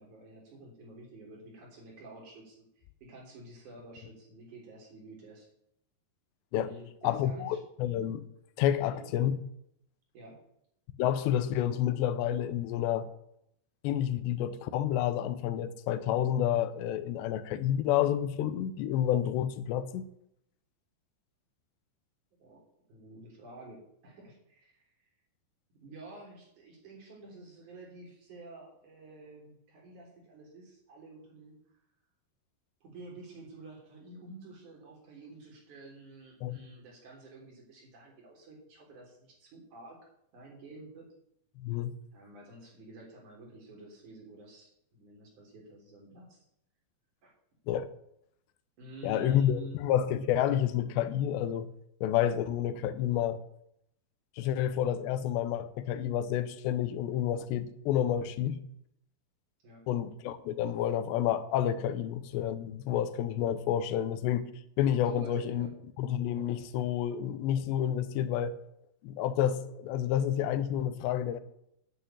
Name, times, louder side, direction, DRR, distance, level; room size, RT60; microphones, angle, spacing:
voice 1, 0.0-2.6 3.0-5.5 6.6-7.6 8.9-9.1 10.1-10.4 22.4-22.6 22.9-25.1 25.8-31.8 32.8-40.0 40.3-41.1 42.1-46.4 47.2-47.3 48.8-49.8 59.6-59.8 65.0-65.7, right 2 dB, 45° right, 4.8 m, -50 dB
voice 2, 7.0-8.3 8.6-9.4 11.0-13.1 13.8-20.1 36.4-36.6 41.6-42.0 47.7-47.9 49.0-51.7 52.0-53.4 54.4-58.6 59.9-64.5 64.8-65.7 66.0-68.5 69.0-71.4, left 10 dB, 90° left, 3.0 m, -29 dB
9.2 x 9.0 x 9.0 m
omnidirectional pair, 5.0 m